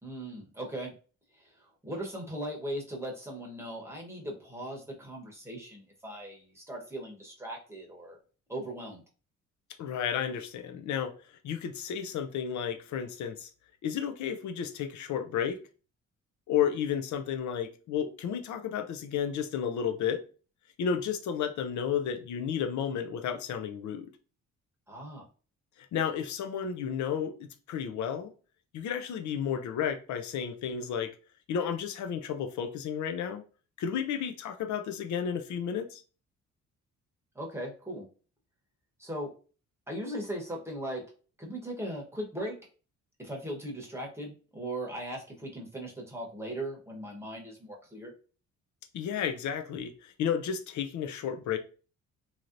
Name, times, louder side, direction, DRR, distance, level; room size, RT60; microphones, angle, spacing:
voice 1, 0.0-0.9 1.3-8.2 8.5-9.0 24.9-25.3 37.3-38.1 39.0-39.3 39.9-41.0 41.4-42.6 43.2-48.1, right 1 dB, 10° right, 1.0 m, -38 dB
voice 2, 9.8-11.1 11.4-13.5 13.8-15.6 16.5-20.2 20.8-24.1 25.9-28.3 28.7-31.1 31.5-33.4 33.8-36.0 48.9-51.6, left 8 dB, 70° left, 0.6 m, -32 dB
3.2 x 2.8 x 2.5 m
cardioid pair, 90°, 30 cm